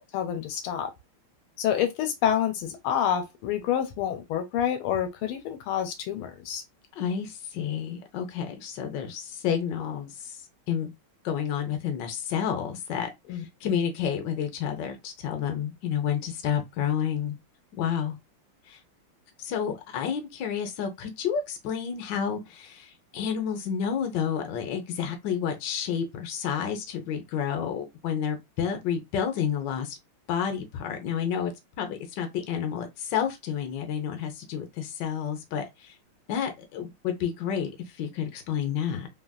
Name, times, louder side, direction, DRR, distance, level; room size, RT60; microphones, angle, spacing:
voice 1, 0.1-0.9 1.6-6.6 13.3-13.8, left 9 dB, 80° left, 1.5 m, -28 dB
voice 2, 7.0-10.4 10.7-10.9 11.2-17.4 17.7-18.2 18.7-18.8 19.4-30.0 30.3-31.5 31.8-35.9 36.3-37.7 38.0-39.1, left 8 dB, 65° left, 1.2 m, -30 dB
3.4 x 2.4 x 2.2 m
omnidirectional pair, 2.3 m